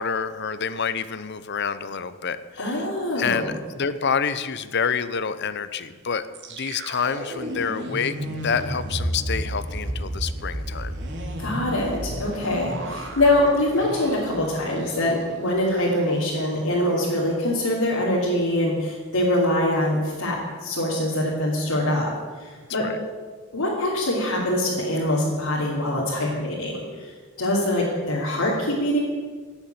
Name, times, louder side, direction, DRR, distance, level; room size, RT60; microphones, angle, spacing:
voice 1, 0.0-2.9 3.2-10.9 22.8-23.0, left 6 dB, 50° left, 13 dB, 0.8 m, -28 dB
voice 2, 2.6-3.5 11.4-22.1 22.4-22.9 23.5-27.1 27.4-29.0, left 1 dB, 85° left, -6 dB, 3.0 m, -24 dB
sound 1, 6.3-15.4 15.7-15.8 16.2-16.6, right 1 dB, 55° right, 2.6 m, -32 dB
17.5 x 7.2 x 9.3 m, 1.5 s
head